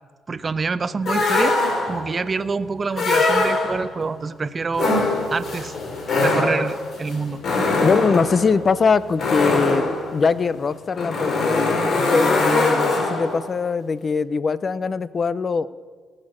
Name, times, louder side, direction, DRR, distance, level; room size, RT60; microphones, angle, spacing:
voice 1, 0.3-1.6 1.9-5.0 5.3-5.7 6.2-7.4, right 4 dB, 35° right, 15 dB, 0.5 m, -26 dB
sound 1, 1.1-2.1 2.9-4.0 4.7-13.5, left 3 dB, 60° left, 2.4 m, -22 dB
voice 2, 7.8-9.9 10.1-15.7, left 5 dB, 40° left, 17 dB, 0.5 m, -22 dB
18.5 x 6.5 x 6.1 m, 1.5 s
cardioid pair, 90°, 0 cm